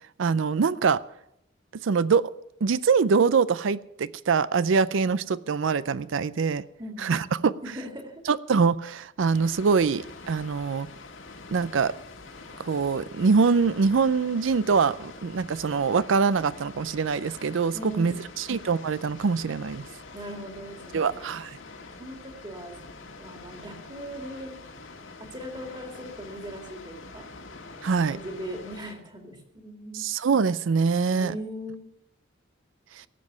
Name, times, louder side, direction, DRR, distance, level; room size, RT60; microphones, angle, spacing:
voice 1, 0.2-1.0 1.7-2.3 2.6-6.6 7.0-7.5 8.3-10.9 11.5-11.9 12.6-19.8 20.9-21.6 27.8-28.2 29.9-31.3, right 5 dB, 75° right, 17 dB, 0.4 m, -24 dB
voice 2, 6.8-8.2 17.7-18.3 20.1-21.4 22.0-22.8 23.2-24.5 25.2-27.2 28.1-30.1 31.1-31.8, equal, 20° right, 3 dB, 2.3 m, -39 dB
Water, 9.3-28.9, left 3 dB, 75° left, 1.8 m, -45 dB
18.0 x 7.5 x 8.0 m, 0.78 s
head